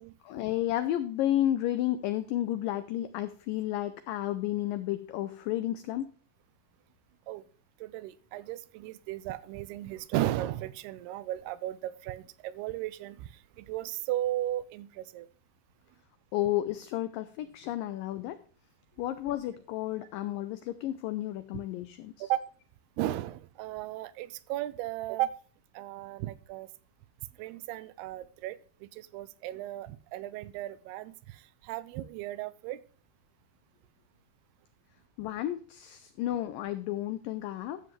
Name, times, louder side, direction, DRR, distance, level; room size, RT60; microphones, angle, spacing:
voice 1, 0.2-6.1 16.3-18.4 19.0-22.3 35.2-37.8, left 13 dB, 85° left, 12 dB, 1.9 m, -32 dB
voice 2, 7.8-13.3 13.6-15.3 22.2-22.4 23.0-25.3 25.8-26.7 27.4-32.8, right 14 dB, 80° right, 16 dB, 2.5 m, -35 dB
12.5 x 7.8 x 3.2 m, 0.42 s
omnidirectional pair, 4.6 m